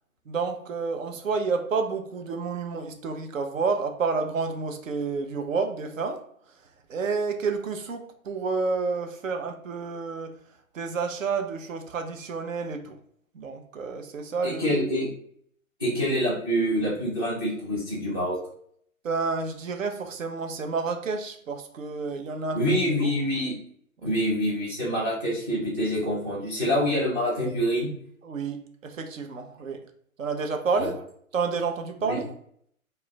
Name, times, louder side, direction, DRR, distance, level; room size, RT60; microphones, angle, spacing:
voice 1, 0.3-6.2 6.9-10.3 10.7-13.0 13.3-14.7 19.0-23.1 24.0-24.2 28.2-29.8 30.2-31.1 31.3-32.2, right 4 dB, 65° right, 5 dB, 0.5 m, -30 dB
voice 2, 14.4-15.1 15.8-18.4 22.5-23.5 24.0-27.9 30.8-30.9 32.0-32.2, equal, 20° right, -6 dB, 0.4 m, -26 dB
2.3 x 2.0 x 3.1 m, 0.65 s
figure-of-eight pair, 125°, 42 cm